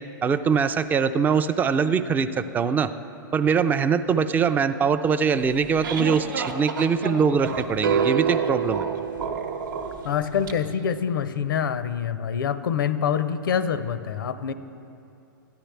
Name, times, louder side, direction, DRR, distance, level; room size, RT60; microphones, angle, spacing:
voice 1, 0.2-2.9 3.3-8.9, right 6 dB, 15° right, 12 dB, 0.3 m, -22 dB
sound 1, 5.4-10.5, right 4 dB, 70° right, 0.9 m, -31 dB
sound 2, 7.8-10.1, right 7 dB, 90° right, 0.4 m, -27 dB
voice 2, 10.0-14.5, left 8 dB, 75° left, 13 dB, 0.5 m, -26 dB
13.0 x 10.5 x 3.4 m, 2.7 s
hypercardioid pair, 120°, 11 cm